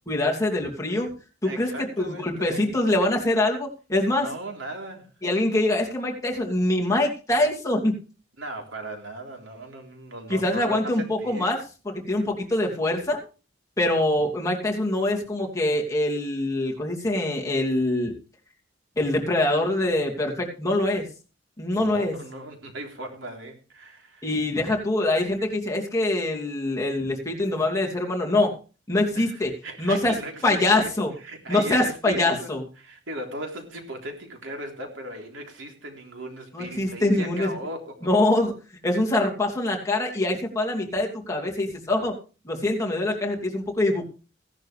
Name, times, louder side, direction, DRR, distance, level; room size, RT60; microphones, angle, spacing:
voice 1, 0.1-1.1 1.4-4.3 5.2-8.0 10.3-11.6 11.9-13.2 13.8-18.1 19.0-21.1 21.6-22.1 24.2-28.5 28.9-29.5 29.8-30.1 30.4-31.1 31.5-32.6 36.5-37.5 38.0-38.5 38.8-42.1 42.4-44.0, left 2 dB, 15° left, 2.7 m, -24 dB
voice 2, 1.4-2.7 4.1-5.1 8.4-11.5 21.7-24.3 29.1-30.9 31.2-32.5 32.8-38.1, right 1 dB, 80° right, 3.6 m, -38 dB
17.0 x 11.5 x 3.3 m
head